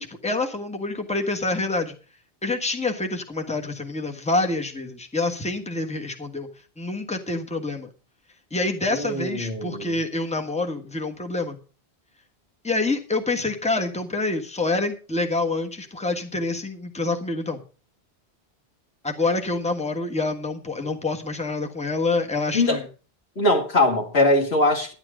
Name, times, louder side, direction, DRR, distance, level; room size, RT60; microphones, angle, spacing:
voice 1, 0.0-1.9 2.4-6.5 6.8-7.9 8.5-11.6 12.6-17.6 19.0-22.8, left 2 dB, 5° left, 1.4 m, -27 dB
voice 2, 8.9-9.9 22.5-22.8 23.4-24.9, left 2 dB, 80° left, 2.3 m, -21 dB
10.5 x 10.5 x 4.9 m
omnidirectional pair, 1.1 m